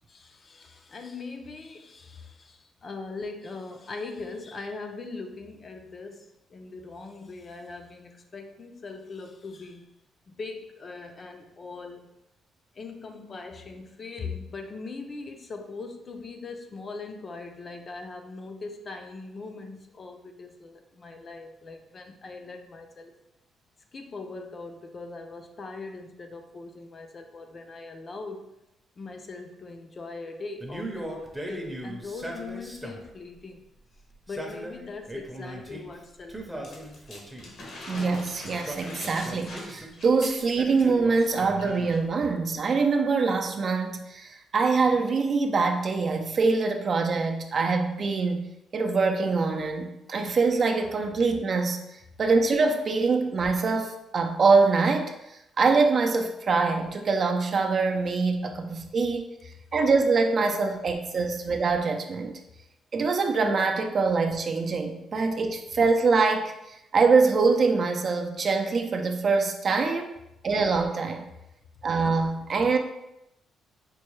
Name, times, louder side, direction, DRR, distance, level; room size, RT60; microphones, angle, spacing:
voice 1, 0.1-9.9 10.3-12.1 12.7-23.1 23.9-28.5 29.0-33.6 34.3-37.0, left 3 dB, 40° left, 4 dB, 0.5 m, -40 dB
Male speech man speaking, 30.6-33.2 34.1-35.9 36.3-37.6 38.4-40.0 40.6-42.1, right 1 dB, 10° right, 0.7 m, -39 dB
sound 1, 36.6-40.9 41.1-41.3 41.6-42.0 42.7-42.8, left 1 dB, 60° left, 0.9 m, -42 dB
voice 2, 37.9-48.4 48.7-51.8 52.2-55.1 55.6-59.2 59.7-62.3 62.9-66.5 66.9-70.2 70.4-71.2 71.8-72.8, right 4 dB, 50° right, 4 dB, 0.5 m, -24 dB
4.4 x 2.2 x 3.1 m, 0.86 s
cardioid pair, 90°, 0 cm